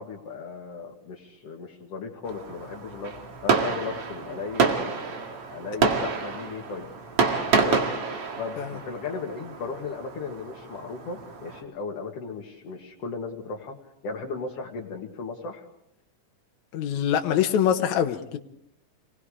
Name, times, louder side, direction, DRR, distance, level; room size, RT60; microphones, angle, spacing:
voice 1, 0.0-6.9 7.4-7.9 8.4-13.8 14.0-15.7, left 4 dB, 55° left, 0 dB, 2.8 m, -36 dB
Fireworks, 2.3-11.6, right 5 dB, 50° right, 2.8 m, -28 dB
voice 2, 16.7-18.4, left 9 dB, 70° left, 4 dB, 2.3 m, -24 dB
27.5 x 20.0 x 5.0 m, 0.75 s
omnidirectional pair, 3.5 m